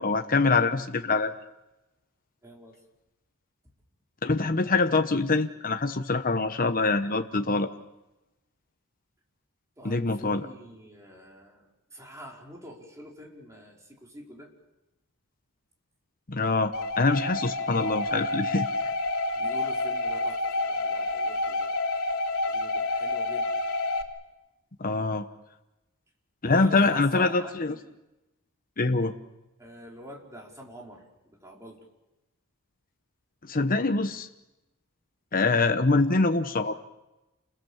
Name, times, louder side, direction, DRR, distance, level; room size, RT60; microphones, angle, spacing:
voice 1, 0.0-1.3 4.2-7.7 9.8-10.5 16.3-18.7 24.8-25.2 26.4-27.7 28.8-29.1 33.4-34.3 35.3-36.8, left 3 dB, 40° left, 7 dB, 1.0 m, -24 dB
voice 2, 2.4-2.8 9.8-14.5 19.3-21.7 22.5-23.5 26.4-27.8 29.6-31.9, equal, 15° right, -1 dB, 5.0 m, -46 dB
sound 1, 16.7-24.0, left 2 dB, 70° left, 3.4 m, -29 dB
29.0 x 21.5 x 7.3 m, 0.99 s
head